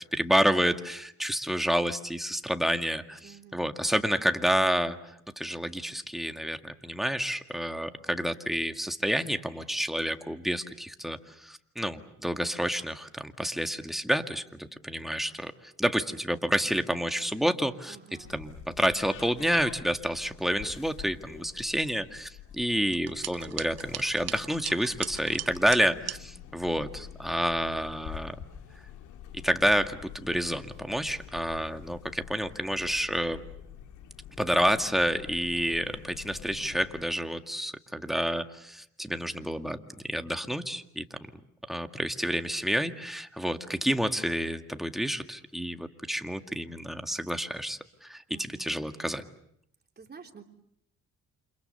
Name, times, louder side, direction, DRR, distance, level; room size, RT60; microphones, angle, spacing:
voice 1, 0.1-18.0 18.3-28.4 29.3-33.4 34.4-41.0 41.7-49.2, equal, ahead, 6 dB, 2.0 m, -29 dB
voice 2, 3.2-3.8 17.9-18.3 48.3-48.8 50.0-50.4, right 6 dB, 35° right, 3 dB, 3.4 m, -50 dB
sound 1, 18.2-37.0, left 9 dB, 85° left, 2.4 m, -47 dB
sound 2, 22.9-26.2, right 10 dB, 55° right, 1.0 m, -39 dB
29.5 x 27.5 x 6.9 m, 0.73 s
cardioid pair, 90°, 30 cm